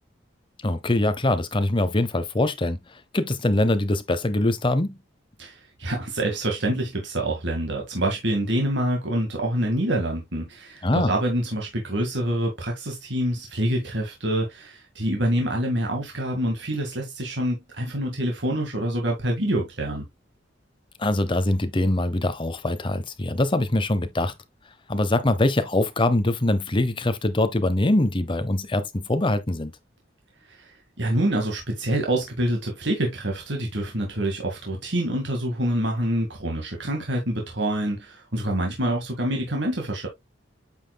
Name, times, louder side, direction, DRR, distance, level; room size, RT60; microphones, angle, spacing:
voice 1, 0.6-2.8 3.1-5.0 10.8-11.1 21.0-24.3 24.9-29.7, left 1 dB, 25° left, 0.8 m, -23 dB
voice 2, 5.4-20.1 30.5-40.1, right 1 dB, 65° right, 2.0 m, -26 dB
8.8 x 5.8 x 2.3 m
head